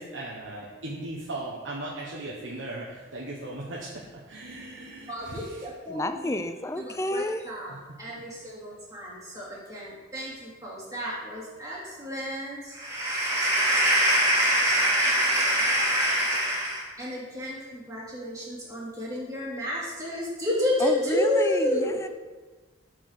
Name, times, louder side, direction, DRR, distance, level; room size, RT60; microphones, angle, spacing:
voice 1, 0.0-5.7 8.1-8.5, right 2 dB, 85° right, 1.1 m, -38 dB
voice 2, 5.1-6.4 6.8-7.7 8.0-21.9, equal, 20° right, 2.4 m, -27 dB
voice 3, 5.9-7.5 20.8-22.1, left 1 dB, 15° left, 0.3 m, -30 dB
7.9 x 4.8 x 6.4 m
head